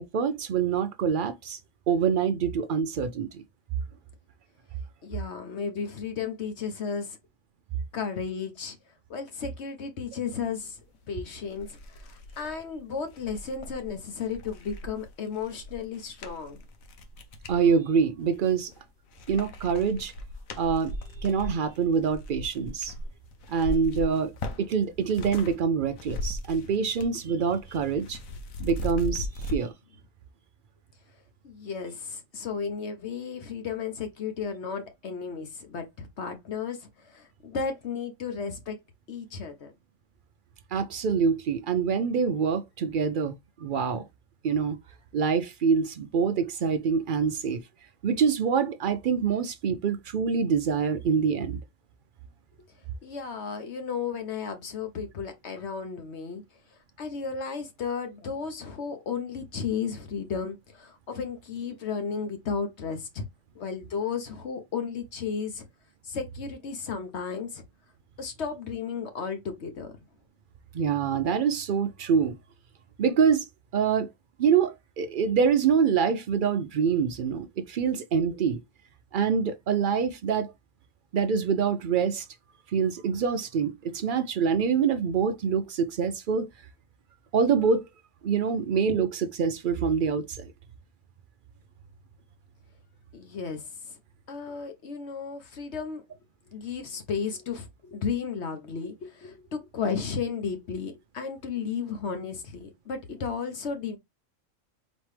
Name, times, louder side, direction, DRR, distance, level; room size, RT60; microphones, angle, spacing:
voice 1, 0.0-1.6 1.9-3.4 17.5-18.7 19.3-20.1 20.5-20.9 21.2-22.9 23.5-24.3 24.6-28.2 28.6-29.7 40.7-43.3 43.6-44.1 44.4-44.8 45.1-47.6 48.0-51.6 70.7-72.4 73.0-73.4 73.7-74.1 74.4-78.6 79.1-80.5 81.1-82.3 82.7-86.5 87.3-87.9 88.2-90.5, right 6 dB, 75° right, 0.4 m, -25 dB
voice 2, 5.0-7.2 7.9-8.8 9.1-16.6 31.4-38.8 39.1-39.7 53.0-56.4 57.0-63.3 63.5-65.6 66.0-67.6 68.2-69.9 93.1-94.0 94.3-96.0 96.5-104.0, left 6 dB, 60° left, 1.1 m, -34 dB
sound 1, 10.9-11.0 11.5-17.6 18.2-18.8 19.1-25.6 25.8-27.2 27.5-29.6, left 1 dB, 75° left, 1.2 m, -38 dB
4.2 x 3.1 x 3.2 m
omnidirectional pair, 1.4 m